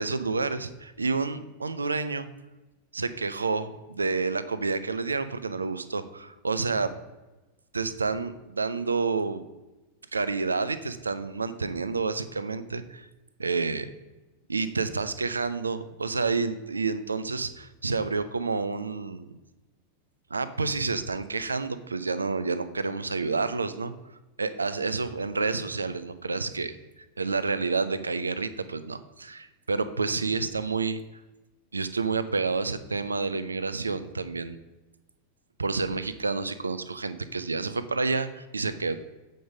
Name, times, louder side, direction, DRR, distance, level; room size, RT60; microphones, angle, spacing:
voice 1, 0.0-2.3 2.9-6.9 7.7-9.4 10.1-13.1 13.4-13.9 14.5-19.3 20.3-23.9 24.4-26.8 27.2-31.0 31.7-34.6 35.6-39.0, right 4 dB, 75° right, 13 dB, 0.5 m, -29 dB
7.8 x 5.3 x 5.1 m, 1.1 s
figure-of-eight pair, 90°, 0 cm